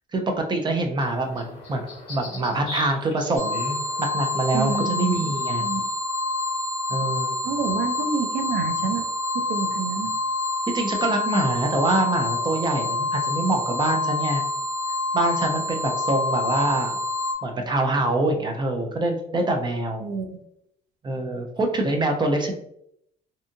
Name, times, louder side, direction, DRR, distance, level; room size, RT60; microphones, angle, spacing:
voice 1, 0.1-1.8 2.1-5.6 6.9-7.3 10.7-14.4 15.1-17.0 17.4-20.0 21.0-22.5, right 2 dB, 25° right, 3 dB, 0.4 m, -25 dB
sound 1, 1.0-5.9, left 2 dB, 35° left, 1.1 m, -41 dB
sound 2, 3.4-17.3, left 2 dB, 10° left, 1.0 m, -27 dB
voice 2, 4.5-5.3 5.6-5.8 7.4-9.1 9.5-10.1 20.0-20.4, right 5 dB, 85° right, 7 dB, 0.4 m, -28 dB
2.7 x 2.5 x 2.5 m, 0.74 s
cardioid pair, 110°, 17 cm